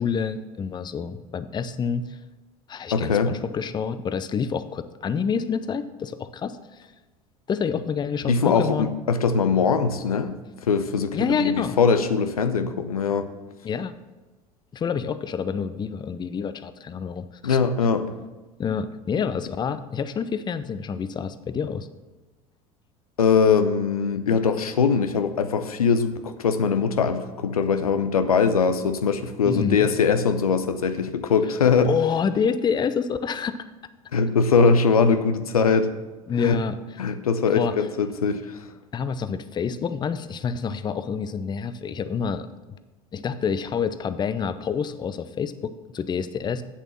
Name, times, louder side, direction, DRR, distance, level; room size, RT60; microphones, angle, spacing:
voice 1, 0.0-2.2 2.7-6.8 7.5-8.9 11.1-11.8 13.6-13.9 14.7-17.6 18.6-21.9 29.4-29.9 31.8-33.6 36.3-37.0 37.6-37.8 38.9-42.8 43.1-46.6, left 6 dB, 25° left, 12 dB, 0.6 m, -27 dB
voice 2, 2.9-3.3 8.3-10.4 10.6-13.3 17.4-18.1 23.2-31.9 34.1-35.9 36.4-36.6 37.0-38.6, left 5 dB, 80° left, 10 dB, 0.7 m, -21 dB
8.3 x 7.1 x 7.3 m, 1.2 s
figure-of-eight pair, 75°, 19 cm